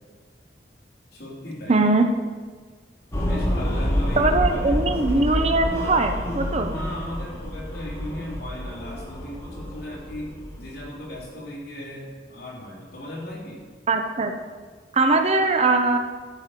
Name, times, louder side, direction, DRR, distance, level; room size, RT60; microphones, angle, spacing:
voice 1, 1.1-1.8 3.1-4.4 4.6-5.8 6.7-13.6, left 1 dB, 60° left, -4 dB, 3.2 m, -37 dB
voice 2, 1.7-2.1 4.2-6.7 13.9-14.3 14.9-16.0, right 3 dB, 40° right, 6 dB, 0.7 m, -21 dB
sound 1, 3.1-11.2, equal, 15° left, 1.9 m, -28 dB
12.5 x 5.4 x 6.5 m, 1.5 s
head